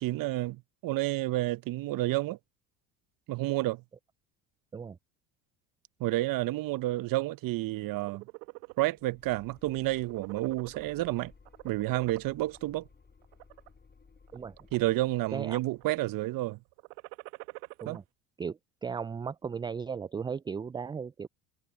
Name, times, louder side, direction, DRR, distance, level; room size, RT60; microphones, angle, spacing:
voice 1, 0.0-2.4 3.3-3.8 6.0-8.2 8.8-11.3 11.6-12.9 14.7-16.6 17.8-18.0, right 17 dB, 55° right, 1.0 m, -30 dB
sound 1, 7.8-8.8 9.3-9.5 9.8-11.1 11.5-12.6 13.2-13.7 14.3-15.0 15.3-15.8 16.7-18.0, right 26 dB, 75° right, 1.8 m, -46 dB
sound 2, 9.0-16.2, left 4 dB, 25° left, 7.1 m, -59 dB
voice 2, 18.4-21.3, right 6 dB, 10° right, 0.3 m, -36 dB
hypercardioid pair, 75°, 41 cm